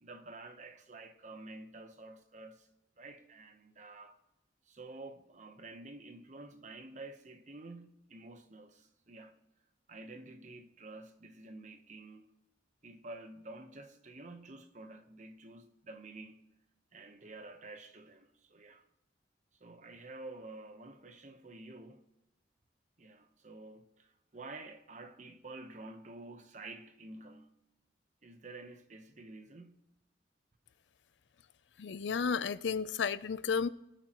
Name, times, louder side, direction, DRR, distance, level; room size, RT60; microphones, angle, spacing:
voice 1, 0.0-2.7 3.0-4.2 4.7-9.4 9.9-12.3 12.8-16.5 16.9-18.9 19.6-22.0 23.0-27.5 28.2-29.8, right 2 dB, 45° right, 1.0 m, -50 dB
voice 2, 31.8-33.7, left 5 dB, 85° left, 0.5 m, -32 dB
23.0 x 8.8 x 3.0 m
head